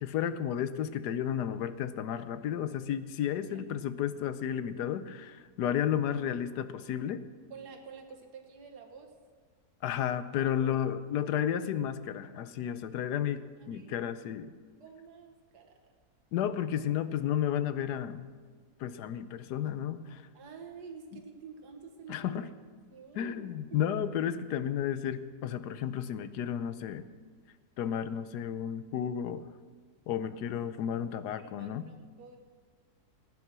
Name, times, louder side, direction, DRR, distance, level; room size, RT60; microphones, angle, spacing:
voice 1, 0.0-7.2 9.8-14.5 16.3-18.3 18.8-20.2 22.1-22.5 23.1-27.0 27.8-29.4 30.1-31.8, left 9 dB, 90° left, 12 dB, 1.3 m, -32 dB
voice 2, 7.5-9.1 10.6-10.8 13.6-14.1 14.8-15.8 20.3-22.5 22.9-23.8 31.4-32.4, right 5 dB, 80° right, 3 dB, 2.0 m, -49 dB
16.0 x 9.8 x 6.1 m, 1.5 s
omnidirectional pair, 1.7 m